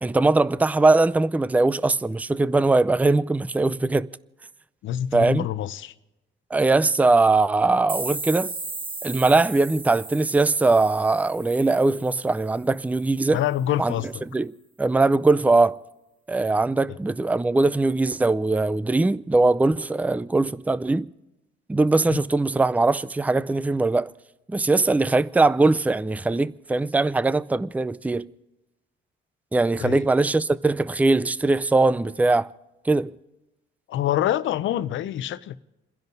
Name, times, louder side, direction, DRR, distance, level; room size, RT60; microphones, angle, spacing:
voice 1, 0.0-4.1 5.1-5.5 6.5-8.5 9.0-13.4 13.8-13.9 14.3-14.5 14.8-15.8 16.3-21.1 21.7-24.1 24.5-28.3 29.5-32.5 32.9-33.1, right 3 dB, 5° right, 0.5 m, -21 dB
voice 2, 4.8-5.9 13.3-14.2 16.9-17.0 22.1-22.2 29.8-30.0 33.9-35.6, left 11 dB, 75° left, 0.8 m, -26 dB
sound 1, 7.9-12.6, right 3 dB, 25° right, 1.0 m, -36 dB
29.0 x 11.0 x 4.0 m
cardioid pair, 90°, 20 cm